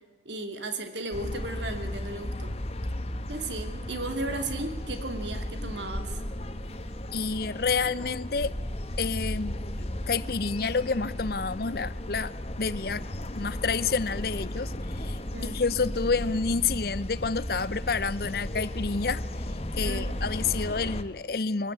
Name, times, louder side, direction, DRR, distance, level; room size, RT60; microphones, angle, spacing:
voice 1, 0.2-2.6 3.3-6.2 15.3-15.6 19.8-20.2, right 2 dB, 75° right, 7 dB, 2.6 m, -35 dB
sound 1, 1.1-21.0, left 1 dB, 35° left, 1.2 m, -35 dB
voice 2, 7.1-8.5 9.0-13.0 13.3-19.2 19.8-21.7, left 4 dB, 55° left, 18 dB, 0.6 m, -29 dB
23.0 x 16.0 x 9.4 m, 1.4 s
head